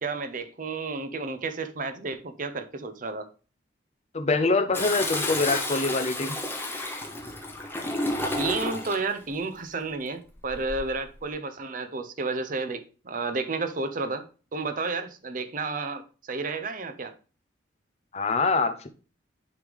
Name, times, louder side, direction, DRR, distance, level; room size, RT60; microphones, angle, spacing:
voice 1, 0.0-3.3 8.4-14.3 14.5-17.1, right 3 dB, 45° right, 0.6 m, -31 dB
voice 2, 4.1-6.4 18.1-18.9, left 3 dB, 35° left, 0.6 m, -24 dB
Toilet flush, 4.7-9.1 10.4-10.9, left 1 dB, 10° left, 1.0 m, -31 dB
9.5 x 3.3 x 3.5 m
head